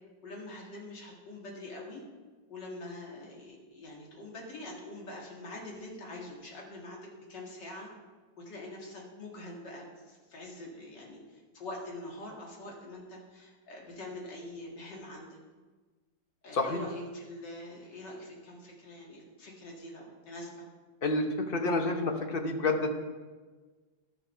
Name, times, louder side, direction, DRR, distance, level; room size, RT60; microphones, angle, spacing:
voice 1, 0.2-2.0 2.5-7.9 8.4-15.3 16.4-20.6, left 1 dB, 70° left, -2 dB, 2.6 m, -44 dB
voice 2, 16.5-16.9 21.0-22.9, left 2 dB, 45° left, 4 dB, 0.8 m, -29 dB
12.0 x 6.7 x 5.6 m, 1.4 s
omnidirectional pair, 2.0 m